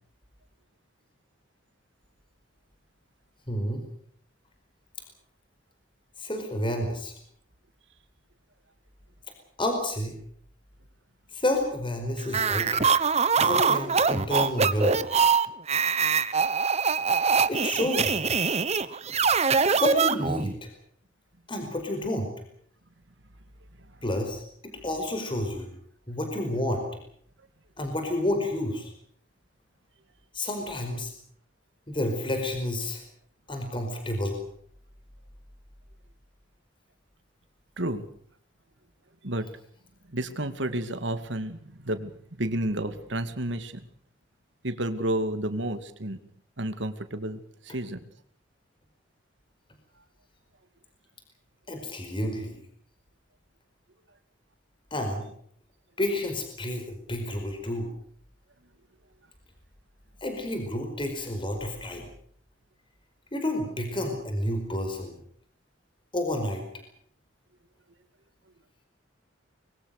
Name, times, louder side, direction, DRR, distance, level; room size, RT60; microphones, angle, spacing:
voice 1, 3.5-3.8 6.2-7.1 9.6-10.1 11.3-12.7 13.3-15.0 17.5-18.3 19.7-20.7 21.5-22.3 24.0-25.7 26.1-26.8 27.8-28.9 30.3-31.1 31.9-33.0 33.5-34.4 51.7-52.5 54.9-55.3 56.0-57.9 60.2-62.1 63.3-65.1 66.1-66.6, left 1 dB, 25° left, 5 dB, 4.9 m, -30 dB
sound 1, 12.3-20.5, right 5 dB, 35° right, 1.1 m, -23 dB
voice 2, 40.1-43.8 44.6-46.2 46.6-48.0, right 1 dB, 65° right, 10 dB, 2.3 m, -31 dB
24.5 x 22.5 x 6.7 m, 0.62 s
head